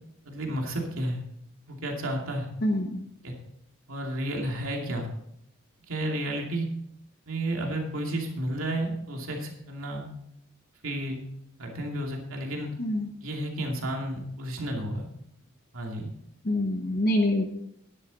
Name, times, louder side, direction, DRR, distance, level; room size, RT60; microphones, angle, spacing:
voice 1, 0.3-1.2 1.7-2.5 3.2-3.3 3.9-5.1 5.9-6.7 7.3-10.1 10.8-11.2 11.6-12.7 13.2-15.1 15.7-16.1, right 1 dB, 85° right, 1 dB, 2.5 m, -32 dB
voice 2, 2.6-3.0 12.8-13.1 16.5-17.4, left 1 dB, 45° left, 2 dB, 0.9 m, -25 dB
12.0 x 10.5 x 4.1 m, 0.77 s
head